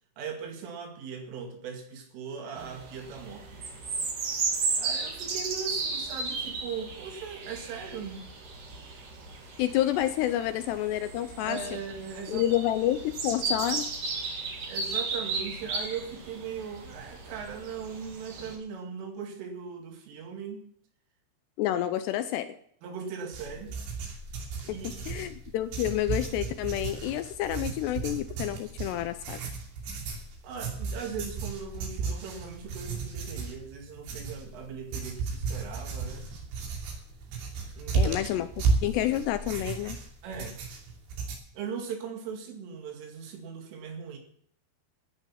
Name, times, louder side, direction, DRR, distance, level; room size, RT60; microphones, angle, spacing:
voice 1, 0.2-3.5 4.8-8.3 11.4-12.5 14.7-20.7 22.8-23.7 24.6-25.4 30.4-36.3 37.8-38.2 40.2-40.7 41.5-44.2, right 6 dB, 85° right, 3 dB, 4.9 m, -39 dB
sound 1, 2.6-18.6, right 4 dB, 50° right, 3.4 m, -35 dB
voice 2, 9.6-11.8 12.3-13.8 21.6-22.5 25.1-29.4 37.9-38.5 38.8-40.0, left 13 dB, 85° left, 11 dB, 2.4 m, -29 dB
sound 2, 23.3-41.4, right 4 dB, 65° right, 4.9 m, -34 dB
13.5 x 10.5 x 5.8 m, 0.64 s
omnidirectional pair, 5.6 m